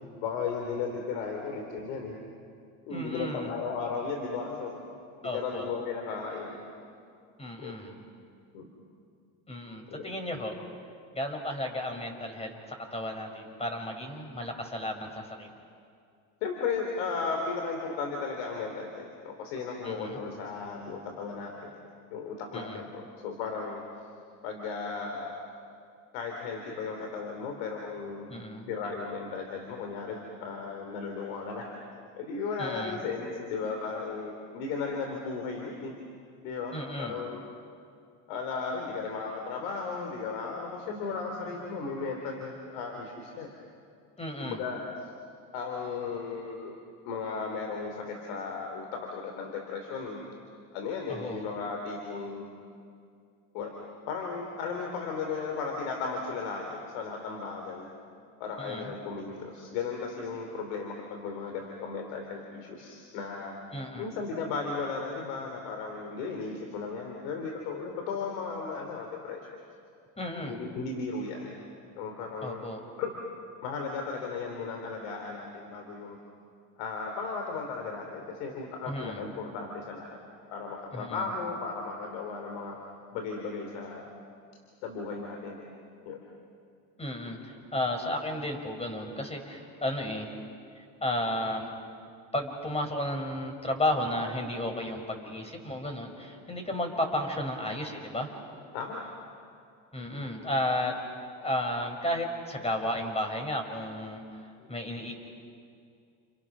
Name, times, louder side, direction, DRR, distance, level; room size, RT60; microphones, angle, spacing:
voice 1, 0.2-2.2 2.9-4.8 5.2-6.6 7.6-7.7 8.5-8.7 9.9-10.1 16.4-21.8 22.1-23.8 24.4-25.4 26.1-28.3 28.7-31.7 32.2-35.9 36.4-37.4 38.3-43.5 44.4-44.8 45.5-46.7 47.1-50.2 50.7-52.5 53.5-53.7 54.1-57.9 58.4-63.5 64.0-69.4 70.4-71.5 72.0-72.7 73.0-73.1 73.6-76.2 76.8-80.2 80.5-82.8 83.1-84.0 84.8-85.6 86.0-86.2 98.7-99.0 100.0-100.3, left 4 dB, 85° left, 2 dB, 3.6 m, -35 dB
voice 2, 2.9-3.5 5.2-5.7 7.4-8.0 9.5-10.5 11.1-15.5 19.8-20.2 22.5-22.9 28.3-28.7 32.6-33.0 36.7-37.2 44.2-44.6 51.1-51.4 58.6-58.9 63.7-64.2 70.2-70.6 72.4-72.8 78.9-79.2 80.9-81.3 87.0-90.3 91.0-91.7 92.3-98.4 99.9-100.9 101.4-105.1, left 1 dB, 15° left, 4 dB, 5.4 m, -33 dB
29.5 x 29.0 x 6.2 m, 2.3 s
supercardioid pair, 100°, 40 cm